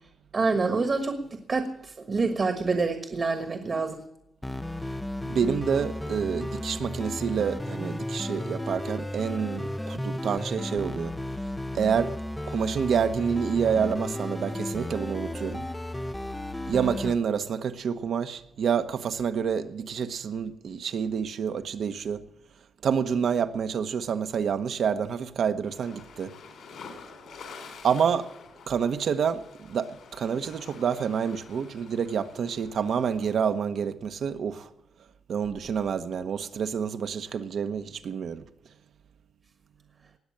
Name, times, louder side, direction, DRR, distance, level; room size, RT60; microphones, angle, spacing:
voice 1, 0.3-4.0, right 4 dB, 35° right, 1.3 m, -27 dB
sound 1, 4.4-17.1, left 1 dB, 5° left, 0.5 m, -34 dB
voice 2, 5.3-11.1 11.7-12.1 12.5-15.7 16.7-22.2 22.8-26.3 27.8-28.3 28.7-29.4 29.7-34.7 35.3-38.4, right 7 dB, 60° right, 1.0 m, -28 dB
sound 2, 25.6-33.6, left 5 dB, 75° left, 3.6 m, -48 dB
19.0 x 7.9 x 8.7 m
wide cardioid pair, 170°, 0 cm